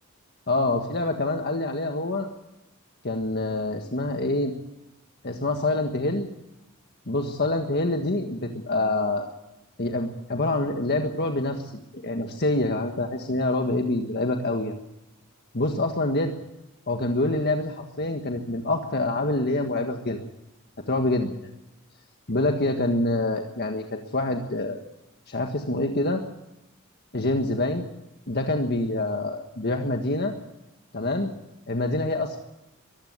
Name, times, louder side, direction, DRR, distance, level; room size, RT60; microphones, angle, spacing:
voice 1, 0.5-2.3 3.0-4.5 5.2-6.3 7.1-9.2 9.8-14.8 15.5-16.3 16.9-20.2 20.9-21.5 22.3-24.8 25.3-26.2 27.1-27.8 28.3-30.3 30.9-31.3 31.7-32.4, left 2 dB, 50° left, 4 dB, 1.6 m, -26 dB
22.5 x 15.0 x 8.0 m, 0.91 s
head